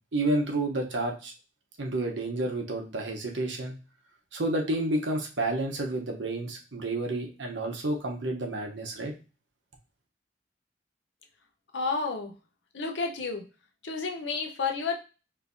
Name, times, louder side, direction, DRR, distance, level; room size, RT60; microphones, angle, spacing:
voice 1, 0.1-1.3 1.8-3.7 4.3-9.1, right 2 dB, 85° right, 2 dB, 0.9 m, -30 dB
voice 2, 11.7-12.3 12.7-13.4 13.8-15.0, left 4 dB, 75° left, 3 dB, 0.7 m, -30 dB
4.5 x 3.2 x 2.6 m, 0.33 s
head